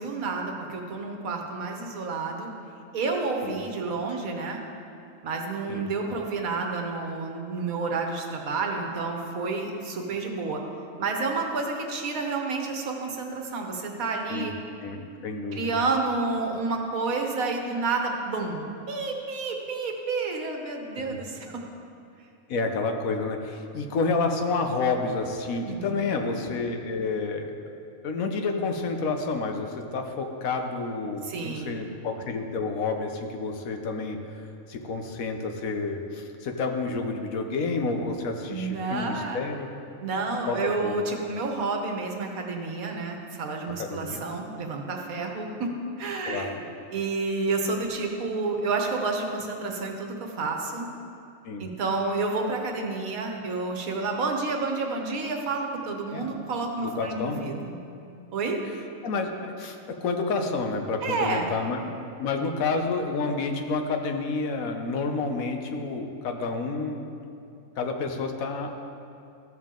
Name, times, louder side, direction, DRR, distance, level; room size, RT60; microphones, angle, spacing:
voice 1, 0.0-2.5 2.9-4.6 5.2-10.6 11.0-14.5 15.5-21.6 25.6-26.1 31.2-31.8 38.5-39.4 40.0-46.5 46.9-50.9 51.6-57.8 58.3-58.6 61.0-61.5, right 3 dB, 80° right, 2 dB, 1.5 m, -30 dB
voice 2, 14.8-15.8 21.1-21.2 22.5-27.5 28.0-34.4 34.7-39.7 40.5-41.0 43.8-44.2 46.3-46.7 51.4-51.7 56.1-56.3 56.8-57.5 59.0-67.1 67.8-68.9, left 3 dB, 80° left, 5 dB, 1.3 m, -29 dB
14.0 x 7.2 x 3.8 m, 2.6 s
omnidirectional pair, 1.4 m